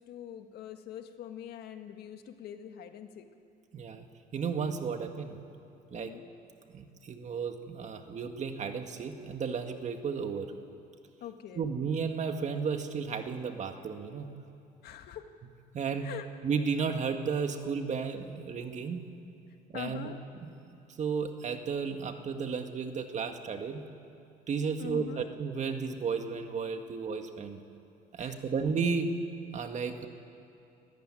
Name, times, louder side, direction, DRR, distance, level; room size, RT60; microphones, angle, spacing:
voice 1, 0.0-3.3 5.9-6.3 11.2-11.6 14.8-15.2 16.0-16.3 19.7-20.2 24.8-25.3 28.2-28.4, left 9 dB, 70° left, 7 dB, 1.7 m, -43 dB
voice 2, 3.7-4.1 4.3-5.4 5.9-6.1 6.7-10.5 11.6-14.3 15.7-16.1 16.4-19.0 19.7-20.5 21.0-23.9 24.5-27.6 28.1-29.1 29.5-30.1, right 5 dB, 45° right, 6 dB, 2.0 m, -33 dB
30.0 x 14.5 x 9.9 m, 2.7 s
cardioid pair, 110°, 17 cm